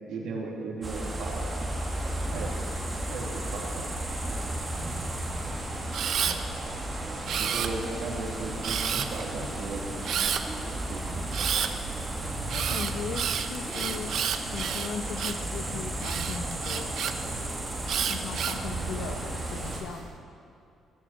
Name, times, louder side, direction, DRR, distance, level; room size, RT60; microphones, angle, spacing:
voice 1, 0.1-1.7 2.3-2.6 3.1-3.9 4.3-4.5 7.4-10.2 10.9-11.4, right 3 dB, 75° right, -1 dB, 2.4 m, -36 dB
sound 1, 0.8-19.8, right 1 dB, 15° right, 2.2 m, -34 dB
Camera, 5.9-6.4 7.3-8.0 8.6-9.2 10.0-10.4 11.3-11.7 12.5-15.5 16.0-17.1 17.9-18.6 19.3-19.8, right 8 dB, 55° right, 0.7 m, -30 dB
voice 2, 6.2-6.6 12.5-16.9 18.1-20.1, left 6 dB, 90° left, 6 dB, 0.9 m, -38 dB
15.0 x 7.1 x 8.6 m, 2.5 s
cardioid pair, 165°, 0 cm